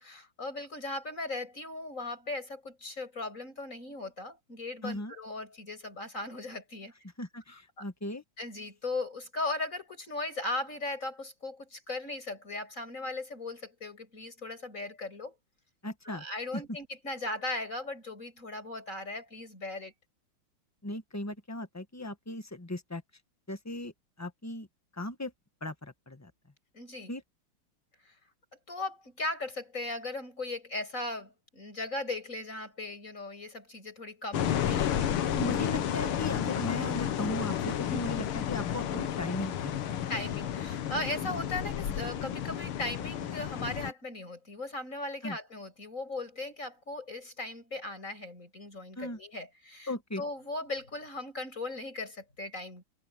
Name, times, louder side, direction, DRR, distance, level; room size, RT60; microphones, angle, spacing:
voice 1, 0.0-6.9 7.8-7.9 8.4-15.3 16.0-19.9 26.7-27.1 28.0-28.1 28.7-35.0 40.1-52.8, left 2 dB, 35° left, 8.5 m, -38 dB
voice 2, 4.8-5.1 7.2-8.2 15.8-16.2 16.5-16.6 20.8-23.0 23.5-23.9 24.2-24.7 24.9-25.3 25.6-26.3 27.1-27.2 35.2-39.8 41.2-41.3 45.2-45.4 49.0-49.2 49.9-50.2, left 1 dB, 10° left, 0.9 m, -37 dB
sound 1, 34.3-43.9, left 10 dB, 80° left, 2.1 m, -32 dB
omnidirectional pair, 2.4 m